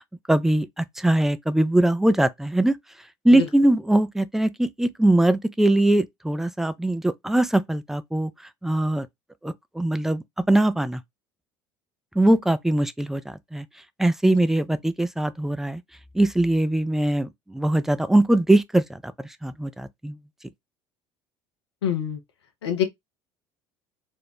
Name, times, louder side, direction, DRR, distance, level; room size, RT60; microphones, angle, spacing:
voice 1, 0.3-2.8 3.2-8.3 8.6-9.1 9.4-11.0 12.2-13.7 14.0-15.8 16.1-19.0 19.4-20.2, right 1 dB, 5° right, 0.3 m, -21 dB
voice 2, 21.8-22.2 22.6-22.8, left 9 dB, 85° left, 0.5 m, -25 dB
2.5 x 2.0 x 3.2 m
hypercardioid pair, 65°, 14 cm